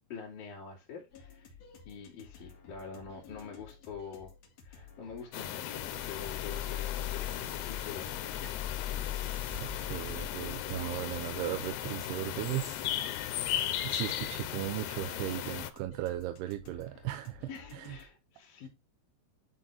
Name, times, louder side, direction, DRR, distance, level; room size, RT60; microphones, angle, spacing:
voice 1, 0.1-1.5 1.8-4.3 4.6-8.8 17.5-18.7, left 6 dB, 65° left, 3.8 m, -46 dB
sound 1, 1.1-18.1, left 6 dB, 50° left, 2.8 m, -53 dB
sound 2, 5.3-15.7, left 12 dB, 90° left, 2.9 m, -37 dB
sound 3, 5.8-12.3 12.8-12.9, left 9 dB, 15° left, 2.7 m, -40 dB
voice 2, 9.5-12.8 13.8-18.0, right 15 dB, 85° right, 2.7 m, -37 dB
10.5 x 4.1 x 4.3 m
omnidirectional pair, 4.6 m